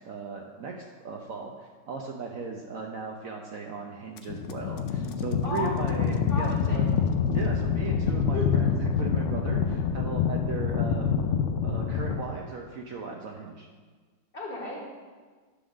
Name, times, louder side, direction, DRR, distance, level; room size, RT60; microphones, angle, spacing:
voice 1, 0.0-6.8 7.3-11.2 11.6-13.7, right 4 dB, 65° right, 1 dB, 0.9 m, -37 dB
sound 1, 4.2-12.2, left 6 dB, 75° left, 0.7 m, -26 dB
voice 2, 5.4-6.9 8.3-8.5 14.3-14.8, left 2 dB, 35° left, -3 dB, 1.5 m, -34 dB
10.0 x 3.8 x 6.2 m, 1.5 s
omnidirectional pair, 1.9 m